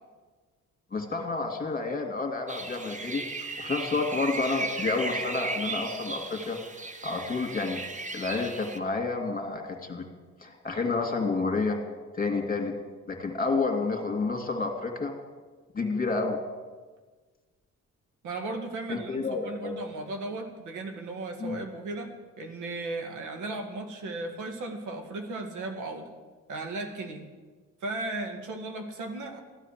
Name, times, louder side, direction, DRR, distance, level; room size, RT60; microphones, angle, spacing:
voice 1, 0.9-3.2 3.6-6.6 7.0-7.8 8.1-10.1 10.4-11.8 12.1-12.7 13.1-15.1 15.7-16.4 18.9-19.7 21.4-21.6, left 3 dB, 30° left, 4 dB, 2.5 m, -29 dB
sound 1, 2.5-8.8, right 3 dB, 25° right, 1.1 m, -36 dB
voice 2, 18.2-22.1 22.4-26.1 26.5-27.2 27.8-29.4, right 2 dB, 80° right, 4 dB, 2.0 m, -36 dB
14.5 x 9.9 x 7.5 m, 1.4 s
cardioid pair, 90°, 30 cm